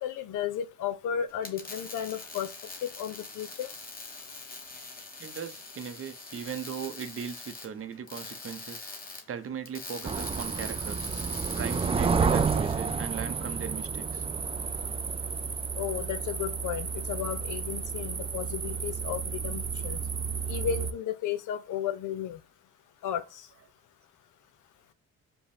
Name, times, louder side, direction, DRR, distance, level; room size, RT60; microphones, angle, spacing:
voice 1, 0.0-2.5 2.8-3.7 15.7-20.0 20.5-22.4 23.0-23.2, left 9 dB, 80° left, 0.8 m, -34 dB
sound 1, 1.3-12.8, left 3 dB, 30° left, 1.4 m, -44 dB
voice 2, 5.2-8.9 9.3-11.1 11.5-14.3, right 7 dB, 45° right, 0.7 m, -38 dB
sound 2, 10.0-20.9, right 5 dB, 20° right, 0.4 m, -31 dB
5.3 x 2.2 x 4.2 m
cardioid pair, 90°, 30 cm